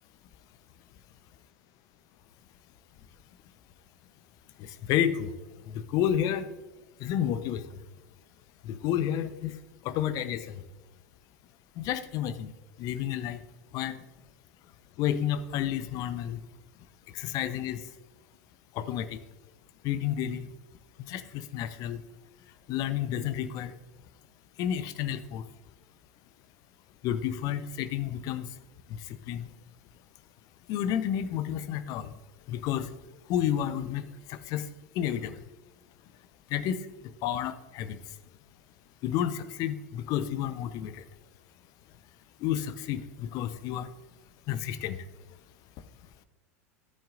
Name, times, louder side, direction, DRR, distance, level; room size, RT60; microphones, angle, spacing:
voice 1, 4.9-5.3 5.7-6.5 7.0-7.6 8.6-9.5 9.8-10.6 11.8-12.5 12.8-13.4 13.7-14.0 15.0-16.4 17.1-17.8 18.7-19.2 19.8-20.5 21.1-22.0 22.7-23.7 24.6-25.4 27.0-28.5 28.9-29.5 30.7-32.1 32.5-32.9 33.3-34.0 34.3-34.6 35.0-35.3 36.5-36.8 37.2-38.0 39.0-41.0 42.4-43.9 44.5-45.0, left 10 dB, 45° left, 12 dB, 0.8 m, -30 dB
14.0 x 8.8 x 2.6 m, 1.2 s
figure-of-eight pair, 85°, 9 cm